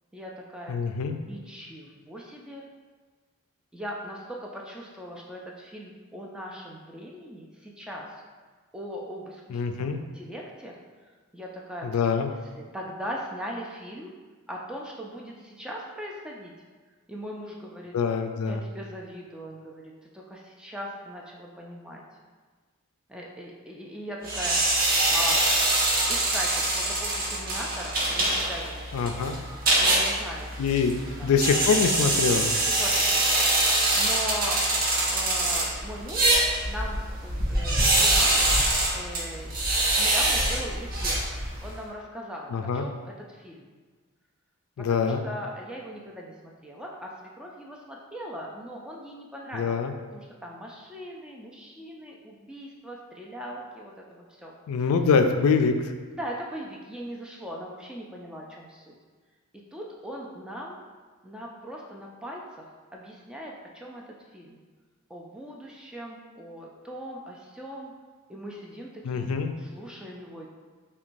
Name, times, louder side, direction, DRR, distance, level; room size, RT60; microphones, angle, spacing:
voice 1, 0.1-0.8 1.3-2.7 3.7-8.1 8.7-10.7 11.3-12.0 12.5-14.1 14.5-16.5 17.1-17.9 18.5-22.0 23.1-24.6 25.0-25.5 26.1-29.3 29.8-30.7 31.0-31.3 32.5-34.6 35.1-36.3 36.7-38.5 38.9-39.5 40.0-41.2 41.6-43.7 44.8-49.8 50.1-54.5 56.1-59.0 59.7-60.8 61.2-62.7 62.9-64.0 64.3-64.6 65.1-67.9 68.3-70.5, equal, 5° right, -2 dB, 0.3 m, -39 dB
voice 2, 0.7-1.2 9.5-10.0 11.8-12.3 17.9-18.6 28.9-29.4 30.6-32.5 42.5-42.9 44.8-45.2 49.5-49.9 54.7-55.8 69.0-69.5, left 5 dB, 85° left, 7 dB, 0.3 m, -24 dB
sound 1, 24.2-41.8, right 1 dB, 40° right, 0.7 m, -24 dB
5.8 x 2.2 x 2.6 m, 1.4 s
head